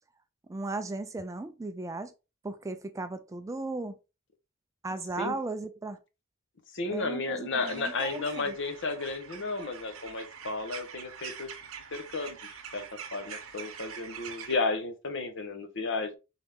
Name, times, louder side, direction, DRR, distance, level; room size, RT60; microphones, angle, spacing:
voice 1, 0.5-2.1 2.4-4.0 4.8-6.0 6.9-8.5, right 2 dB, 15° right, 0.3 m, -36 dB
voice 2, 6.7-11.5 11.9-12.4 12.7-16.2, left 3 dB, 60° left, 0.9 m, -33 dB
sound 1, 7.6-14.5, right 7 dB, 80° right, 0.8 m, -44 dB
4.0 x 3.4 x 3.4 m
head